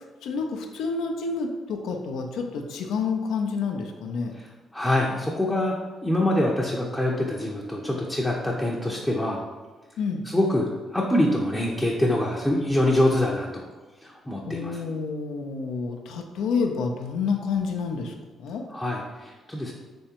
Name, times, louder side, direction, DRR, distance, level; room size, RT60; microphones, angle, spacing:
voice 1, 0.2-4.4 10.0-10.3 14.5-18.6, left 5 dB, 75° left, 3 dB, 0.4 m, -29 dB
voice 2, 4.7-5.8 6.0-9.4 10.3-13.6 14.0-14.8 18.7-19.7, left 1 dB, 10° left, -4 dB, 0.6 m, -25 dB
3.5 x 3.2 x 2.9 m, 1.3 s
supercardioid pair, 60°, 0 cm